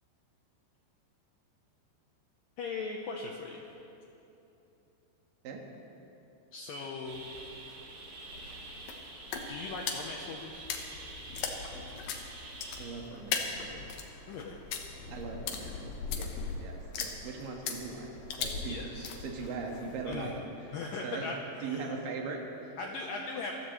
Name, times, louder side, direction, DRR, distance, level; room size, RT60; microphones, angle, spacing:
voice 1, 2.6-3.7 6.5-7.2 9.5-10.7 14.3-14.6 18.7-19.1 20.1-20.4 20.7-21.9 22.8-23.5, left 4 dB, 85° left, 0 dB, 1.9 m, -39 dB
sound 1, 7.1-13.0, right 2 dB, 90° right, 5.3 m, -47 dB
sound 2, 7.3-20.4, left 5 dB, 65° left, 2.3 m, -40 dB
voice 2, 12.8-13.9 15.1-18.1 18.4-18.8 19.2-20.5 21.0-21.3 21.6-22.8, right 4 dB, 60° right, 0 dB, 2.8 m, -40 dB
26.0 x 15.5 x 3.2 m, 2.9 s
omnidirectional pair, 5.3 m